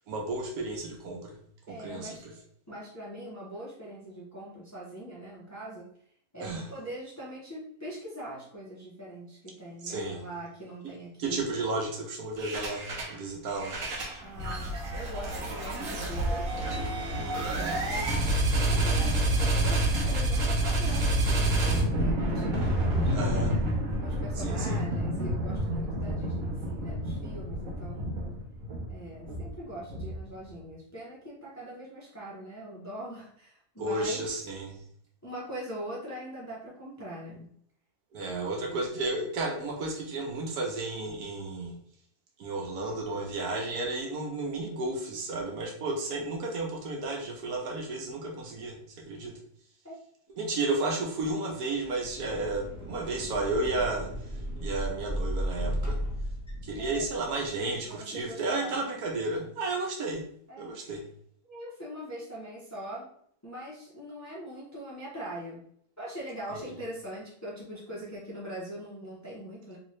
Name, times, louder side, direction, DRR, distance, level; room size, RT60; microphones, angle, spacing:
voice 1, 0.1-1.3 1.7-2.2 6.4-6.7 9.8-10.3 11.2-13.8 17.1-17.6 23.1-23.5 24.4-24.8 33.8-34.8 38.1-41.7 42.4-48.8 49.1-49.3 50.3-54.1 54.6-56.0 56.6-60.2 60.6-61.0, right 2 dB, 85° right, 0 dB, 1.3 m, -32 dB
voice 2, 1.7-2.2 2.7-5.9 6.3-11.4 14.2-16.5 17.5-18.2 18.5-23.6 24.0-28.2 28.9-34.5 35.2-37.5 38.2-38.9 49.8-50.0 56.8-57.0 57.8-58.8 60.5-60.9 61.5-63.1 63.4-65.6 66.0-69.8, right 1 dB, 15° left, -6 dB, 0.6 m, -42 dB
sound 1, 12.4-13.2 13.5-30.4, right 1 dB, 60° right, 1.2 m, -29 dB
sound 2, 51.8-57.4, equal, 15° right, 0.8 m, -35 dB
3.3 x 2.9 x 3.1 m, 0.65 s
omnidirectional pair, 1.6 m